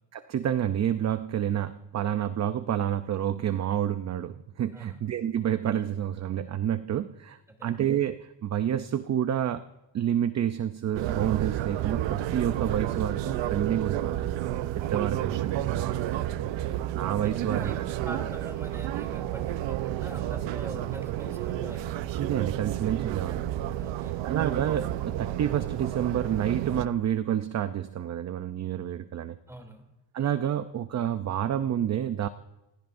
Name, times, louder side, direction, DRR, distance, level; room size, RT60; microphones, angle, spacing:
voice 1, 0.1-9.6 9.9-17.8 22.2-23.8 24.2-29.4 30.1-32.3, right 10 dB, 40° right, 11 dB, 0.6 m, -29 dB
sound 1, 10.9-26.9, right 12 dB, 75° right, 0.8 m, -31 dB
voice 2, 17.2-21.9 23.8-24.1 29.5-29.8, right 1 dB, 5° right, 4 dB, 2.9 m, -44 dB
29.0 x 16.0 x 2.6 m, 0.98 s
cardioid pair, 130°, 45 cm